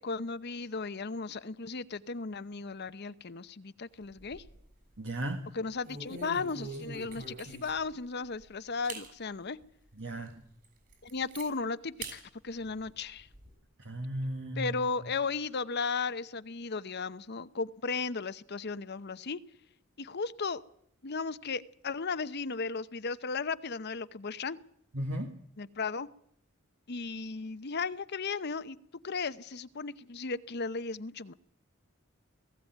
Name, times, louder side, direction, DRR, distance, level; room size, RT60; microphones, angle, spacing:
voice 1, 0.0-4.4 5.6-9.6 11.0-13.3 14.6-19.4 20.0-20.6 21.0-24.6 25.6-26.1 26.9-28.8 29.0-31.3, left 4 dB, 55° left, 13 dB, 0.8 m, -35 dB
sound 1, 4.0-4.7 5.1-5.3 5.8-7.9 8.4-8.5 8.8-9.1 9.6-9.7 10.2-10.3 10.6-11.5 12.0-12.2 12.6-13.5, right 3 dB, 45° right, 7.0 m, -44 dB
voice 2, 5.0-5.5 10.0-10.5 13.8-14.8 24.9-25.3, right 1 dB, 65° right, 4 dB, 1.7 m, -35 dB
19.5 x 15.5 x 9.2 m, 0.69 s
head